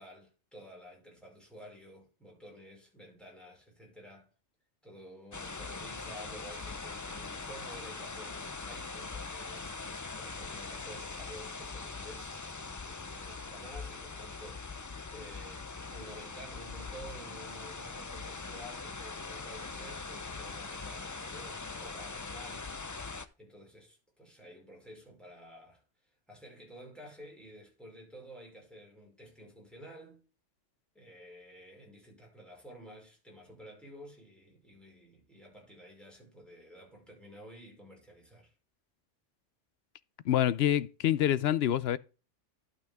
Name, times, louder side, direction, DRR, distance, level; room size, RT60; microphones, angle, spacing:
voice 1, 0.0-4.3 4.8-9.7 10.2-12.4 12.8-14.7 15.1-22.7 23.4-30.2 31.0-38.5, equal, ahead, 5.2 m, -51 dB
sound 1, 5.3-23.3, left 4 dB, 30° left, 0.3 m, -42 dB
voice 2, 40.2-42.0, left 11 dB, 65° left, 0.7 m, -26 dB
12.0 x 5.7 x 3.5 m
omnidirectional pair, 1.2 m